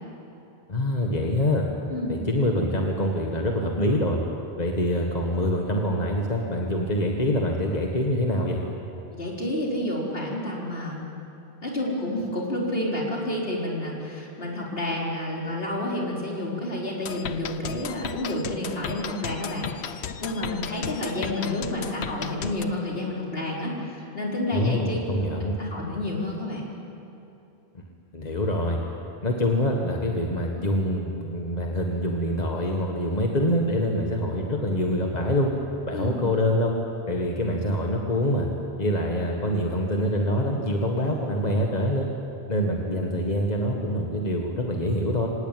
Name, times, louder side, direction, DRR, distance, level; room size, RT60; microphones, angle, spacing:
voice 1, 0.7-1.7 2.1-4.2 4.6-8.6 24.5-25.5 28.1-28.8 29.2-35.5 35.9-36.7 37.1-38.5 38.8-42.1 42.5-45.3, left 1 dB, 40° left, 0 dB, 1.8 m, -25 dB
voice 2, 9.1-11.0 11.6-25.0 25.6-26.6 35.9-36.2, left 1 dB, 70° left, -3 dB, 4.6 m, -30 dB
sound 1, 17.1-22.6, left 8 dB, 90° left, 1.1 m, -35 dB
25.5 x 18.5 x 9.3 m, 2.8 s
omnidirectional pair, 1.1 m